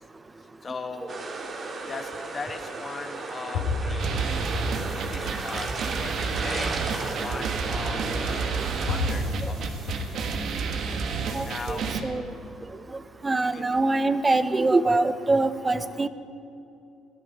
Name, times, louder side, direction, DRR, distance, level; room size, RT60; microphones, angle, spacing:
voice 1, 0.6-1.3 1.9-4.6 4.9-6.8 7.1-9.9 11.4-12.1 13.4-13.6, left 4 dB, 35° left, 6 dB, 1.5 m, -39 dB
sound 1, 1.1-9.0, right 3 dB, 45° right, 2.1 m, -34 dB
sound 2, 1.6-1.7 2.9-3.0 3.5-4.9 5.4-5.9 6.9-7.0 8.2-8.3 8.9-10.2 10.7-11.3, left 4 dB, 90° left, 4.1 m, -31 dB
sound 3, 4.0-12.0, right 5 dB, 65° right, 1.5 m, -30 dB
voice 2, 11.3-12.2 13.2-16.1, right 2 dB, 25° right, 13 dB, 0.8 m, -24 dB
18.0 x 11.0 x 5.6 m, 2.7 s
supercardioid pair, 70°, 0 cm